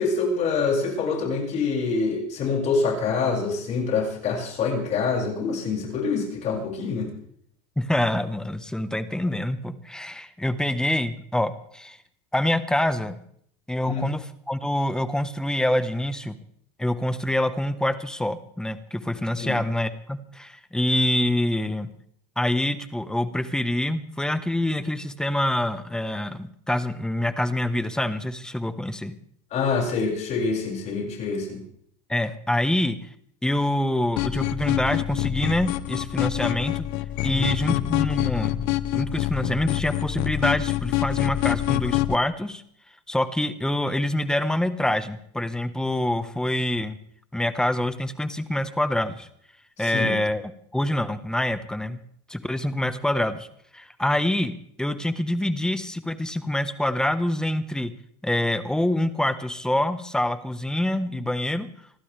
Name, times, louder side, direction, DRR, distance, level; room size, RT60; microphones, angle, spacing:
voice 1, 0.0-7.1 13.9-14.0 19.4-19.6 29.5-31.6 37.3-37.8 49.8-50.2, left 4 dB, 45° left, 0 dB, 6.8 m, -26 dB
voice 2, 7.8-12.0 12.3-13.2 13.7-16.4 16.8-21.9 22.4-29.1 32.1-33.0 33.4-36.8 37.2-38.7 38.9-42.6 43.1-47.0 47.3-49.3 49.8-50.4 50.7-52.0 52.3-53.5 53.7-57.9 58.2-61.7, left 1 dB, 5° left, 11 dB, 1.3 m, -26 dB
sound 1, 34.2-42.1, left 15 dB, 65° left, 0.9 m, -26 dB
27.5 x 12.5 x 3.5 m, 0.65 s
supercardioid pair, 115°, 17 cm